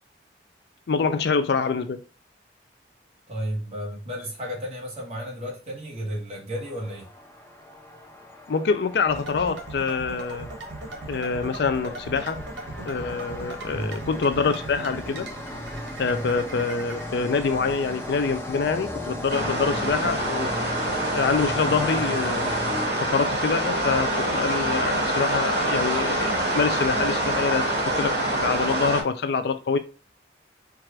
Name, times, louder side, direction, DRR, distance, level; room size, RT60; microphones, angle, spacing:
voice 1, 0.9-2.0 8.5-10.5 11.1-12.4 12.9-15.3 16.0-20.5 21.1-22.5 23.0-29.8, left 5 dB, 60° left, 0.4 m, -25 dB
voice 2, 3.3-7.1 13.7-14.0 19.3-19.5, equal, 35° right, 1.6 m, -33 dB
sound 1, 6.6-23.4, left 1 dB, 10° left, 1.0 m, -36 dB
sound 2, 9.0-17.0, right 2 dB, 85° right, 1.3 m, -39 dB
sound 3, 19.3-29.0, right 1 dB, 65° right, 2.3 m, -25 dB
4.7 x 2.5 x 4.3 m
head